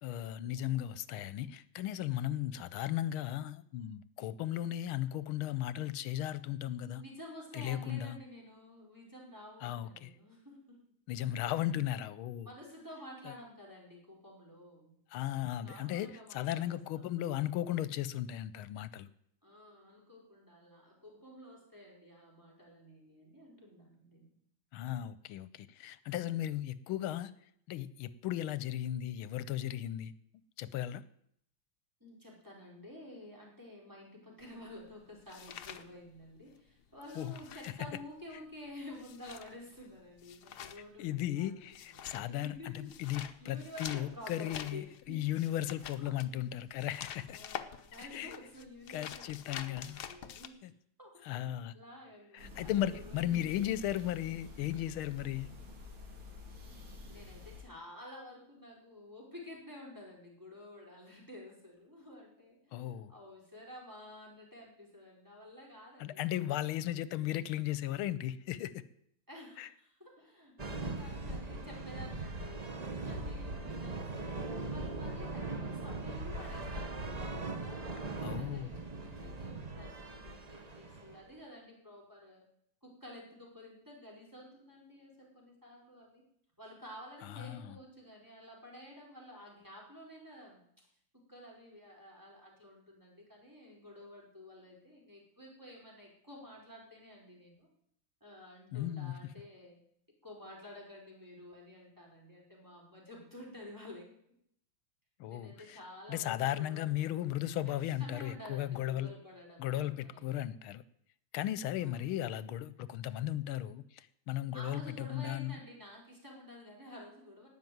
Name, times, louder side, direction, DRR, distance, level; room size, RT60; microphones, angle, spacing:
voice 1, 0.0-7.0 7.5-8.2 9.6-10.1 11.1-12.5 13.2-13.3 15.1-19.1 24.7-27.3 27.7-30.1 30.6-31.0 37.1-37.3 37.6-37.7 41.0-47.4 48.1-48.3 48.9-50.0 50.6-50.7 51.2-51.7 52.3-55.5 62.7-63.1 66.0-68.8 69.6-69.7 78.2-78.7 87.2-87.8 98.7-99.2 105.2-105.8 106.1-109.1 109.6-110.8 111.3-115.6, left 12 dB, 80° left, 17 dB, 1.6 m, -36 dB
voice 2, 6.8-10.8 12.4-15.0 15.6-17.1 19.4-24.3 32.0-41.6 41.9-45.5 46.0-46.2 47.3-50.6 51.0-53.8 57.0-66.6 67.0-67.1 69.3-74.4 74.7-82.4 82.8-86.2 86.6-90.9 91.3-97.7 98.2-99.8 100.2-104.1 105.3-107.3 107.6-107.7 108.0-110.5 111.8-112.2 114.5-117.5, left 1 dB, 10° right, -3 dB, 4.6 m, -51 dB
sound 1, 34.4-36.6 36.8-50.5, left 9 dB, 60° left, 1.2 m, -47 dB
sound 2, 52.4-57.6, left 2 dB, 85° right, 3.3 m, -49 dB
sound 3, 70.6-81.3, right 2 dB, 30° right, 0.7 m, -40 dB
18.0 x 6.0 x 9.3 m, 0.71 s
omnidirectional pair, 2.3 m